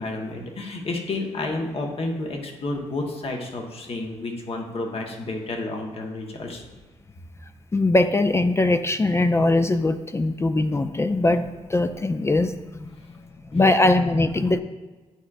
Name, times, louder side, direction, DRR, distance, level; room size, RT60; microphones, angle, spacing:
voice 1, 0.0-6.6, left 2 dB, 55° left, 1 dB, 1.3 m, -30 dB
voice 2, 7.7-12.8 13.5-14.6, left 2 dB, 20° left, 8 dB, 0.4 m, -21 dB
11.5 x 4.8 x 2.5 m, 1.3 s
cardioid pair, 70°, 12 cm